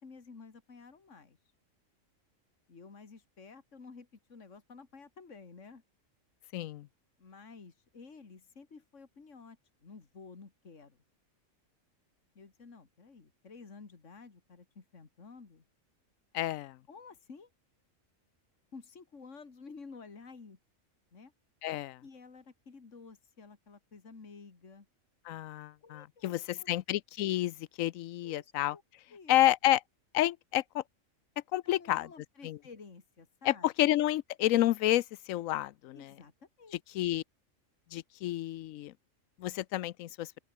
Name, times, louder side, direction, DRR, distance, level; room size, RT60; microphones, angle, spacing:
voice 1, 0.0-1.4 2.7-5.8 7.2-11.0 12.3-15.6 16.9-17.5 18.7-20.6 21.1-21.3 22.0-24.9 25.8-26.7 28.2-28.8 29.1-29.4 31.6-33.7 35.9-36.8, left 4 dB, 65° left, 2.7 m, -52 dB
voice 2, 6.5-6.9 16.3-16.8 21.6-22.0 25.3-26.4 26.7-28.7 29.3-29.8 30.1-30.8 31.5-32.1 32.4-32.6 33.5-36.0 36.9-37.2 37.9-38.9 39.4-40.3, left 14 dB, 80° left, 1.0 m, -29 dB
open air
omnidirectional pair, 1.4 m